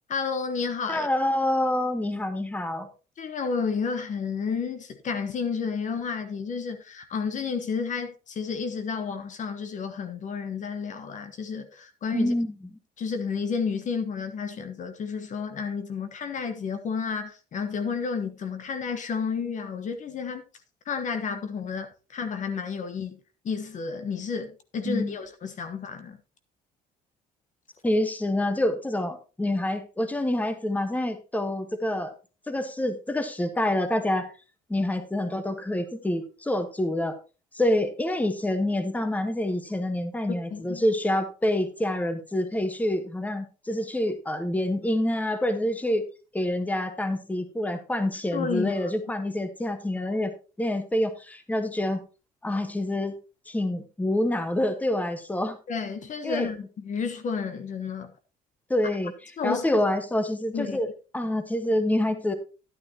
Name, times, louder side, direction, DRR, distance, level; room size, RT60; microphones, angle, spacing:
voice 1, 0.1-1.1 3.2-12.3 13.0-20.4 20.8-23.2 23.4-26.2 40.5-40.8 48.3-48.9 55.7-58.1 59.4-59.6 60.5-60.8, left 5 dB, 45° left, 1.2 m, -31 dB
voice 2, 0.9-2.9 12.1-12.5 24.8-25.2 27.8-32.1 32.5-34.3 34.7-37.1 37.5-46.0 46.3-50.3 50.6-52.0 52.4-53.2 53.5-55.6 56.2-56.5 58.7-59.1 59.4-60.9 61.1-62.3, left 1 dB, 10° left, 1.3 m, -27 dB
11.5 x 9.7 x 2.9 m
cardioid pair, 110°, 17 cm